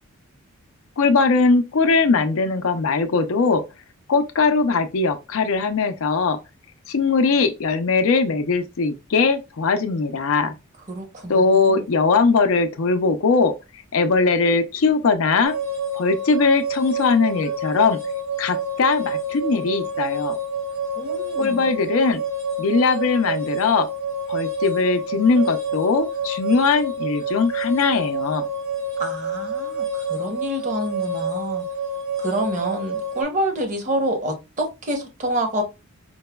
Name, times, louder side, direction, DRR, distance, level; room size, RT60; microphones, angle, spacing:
voice 1, 1.0-3.6 4.1-6.4 6.9-10.5 11.3-13.5 13.9-15.6 15.9-18.0 18.4-20.3 21.4-22.2 22.6-23.9 24.3-28.5, left 4 dB, 65° left, 0.4 m, -20 dB
voice 2, 10.9-11.9 21.0-21.7 29.0-31.6 32.2-35.6, right 1 dB, 35° right, 0.8 m, -27 dB
sound 1, 15.4-33.2, right 2 dB, 80° right, 1.6 m, -28 dB
4.6 x 2.1 x 2.2 m
head